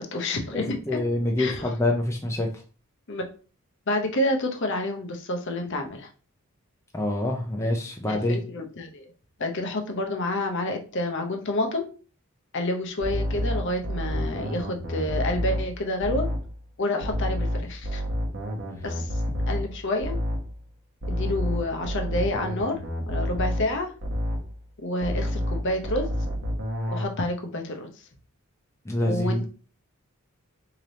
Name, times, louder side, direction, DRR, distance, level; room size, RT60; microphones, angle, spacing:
voice 1, 0.0-1.0 1.4-1.6 3.1-3.2 3.9-6.1 7.6-7.7 8.1-9.1 9.4-11.9 12.5-16.3 16.8-18.0 18.8-19.1 19.5-20.2 21.1-22.8 23.1-23.9 24.8-26.1 26.9-27.9 29.0-29.5, left 1 dB, 55° left, 4 dB, 0.7 m, -29 dB
voice 2, 0.5-2.5 6.9-8.4 28.9-29.5, left 1 dB, 10° left, 1 dB, 0.5 m, -26 dB
sound 1, 13.0-16.5 17.0-20.5 21.0-24.5 25.0-27.0, equal, 50° right, 1.0 m, -29 dB
3.2 x 2.9 x 3.9 m, 0.37 s
head